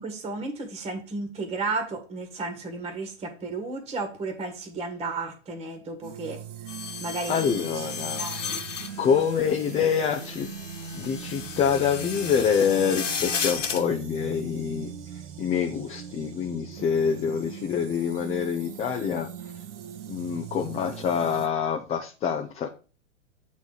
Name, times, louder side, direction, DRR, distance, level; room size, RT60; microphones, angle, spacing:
voice 1, 0.0-6.4 7.0-7.9 8.2-8.6, right 3 dB, 15° right, 4 dB, 1.5 m, -33 dB
sound 1, 6.0-21.5, right 8 dB, 70° right, 1.2 m, -41 dB
sound 2, 6.7-13.8, left 6 dB, 85° left, 1.5 m, -34 dB
voice 2, 7.3-8.3 9.0-10.5 10.9-14.9 15.4-19.3 20.1-22.7, left 7 dB, 15° left, 2 dB, 0.6 m, -26 dB
7.9 x 4.1 x 4.9 m, 0.35 s
hypercardioid pair, 125°, 36 cm